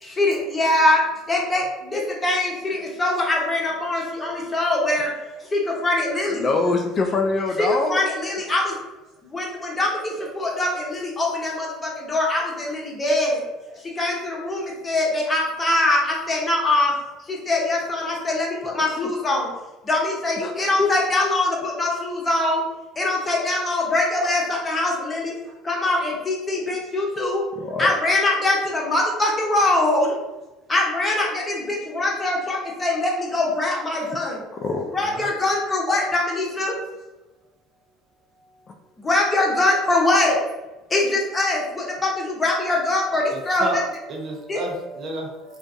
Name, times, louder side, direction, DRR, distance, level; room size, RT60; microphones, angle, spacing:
voice 1, 0.0-5.1 5.5-6.5 7.6-8.8 9.2-13.4 13.8-16.9 17.3-19.5 19.8-22.6 23.0-25.3 25.6-27.4 27.8-30.1 30.7-34.4 34.9-36.7 39.0-40.4 40.9-43.8 44.5-44.6, left 2 dB, 25° left, -2 dB, 0.9 m, -23 dB
voice 2, 6.3-8.0 19.0-19.1 20.4-20.9 27.6-27.9 34.6-35.3, left 3 dB, 40° left, 3 dB, 0.3 m, -24 dB
voice 3, 35.0-35.3 43.1-45.6, right 2 dB, 50° right, 1 dB, 0.6 m, -33 dB
2.5 x 2.2 x 2.5 m, 1.1 s
hypercardioid pair, 75°, 0 cm